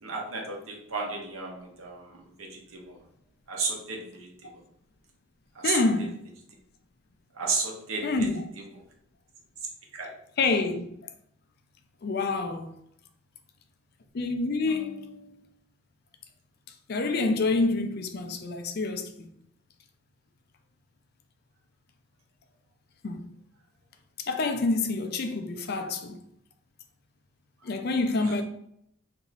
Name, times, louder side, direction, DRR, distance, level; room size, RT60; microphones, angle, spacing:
voice 1, 0.0-3.0 3.5-4.6 5.5-5.8 7.3-8.3 9.9-10.1 28.2-28.4, right 4 dB, 85° right, 1.0 m, -33 dB
voice 2, 5.6-6.2 8.0-8.5 10.4-10.9 12.0-12.7 14.1-15.4 16.9-19.3 23.0-23.3 24.2-26.2 27.6-28.4, left 3 dB, 50° left, 0.4 m, -27 dB
2.9 x 2.7 x 4.0 m
head